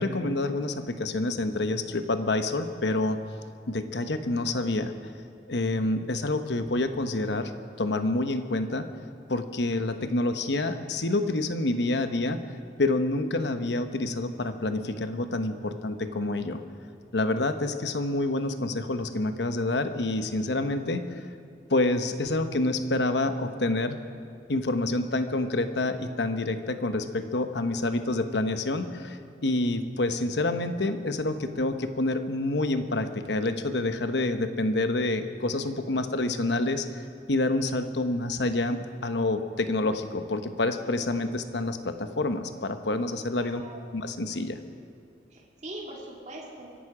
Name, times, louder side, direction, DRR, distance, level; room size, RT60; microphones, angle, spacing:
voice 1, 0.0-3.2 3.7-4.9 5.5-7.5 7.8-8.9 9.3-12.4 12.8-16.6 17.1-21.0 21.7-24.0 24.5-36.8 37.3-43.6 43.9-44.6, left 2 dB, 70° left, 9 dB, 1.0 m, -27 dB
voice 2, 37.4-37.8 43.4-43.9 45.3-46.7, right 1 dB, 40° right, -3 dB, 2.5 m, -42 dB
25.0 x 11.5 x 5.0 m, 2.4 s
head